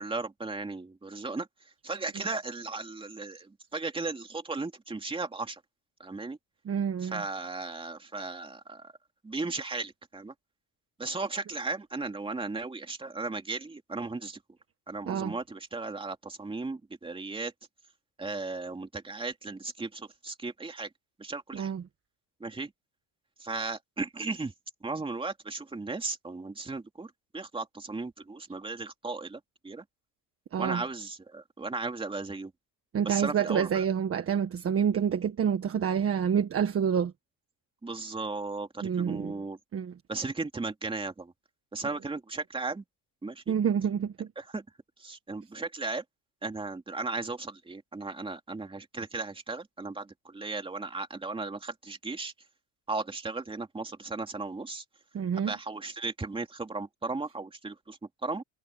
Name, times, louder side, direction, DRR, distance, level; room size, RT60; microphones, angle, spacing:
voice 1, 0.0-1.5 1.8-5.6 6.0-6.4 7.0-8.9 9.2-10.3 11.0-14.4 14.9-17.5 18.2-20.9 21.2-21.7 22.4-22.7 23.4-24.5 24.8-29.8 30.6-32.5 33.0-33.8 37.8-39.6 40.1-41.3 41.7-42.8 43.2-43.6 44.4-44.6 45.0-46.0 46.4-52.3 52.9-54.8 55.4-58.4, right 3 dB, 15° right, 2.7 m, -36 dB
voice 2, 6.6-7.2 15.1-15.3 21.5-21.8 30.5-30.8 32.9-37.1 38.8-39.3 39.7-39.9 43.5-44.3 55.1-55.5, right 8 dB, 35° right, 1.5 m, -28 dB
cardioid pair, 130°, 41 cm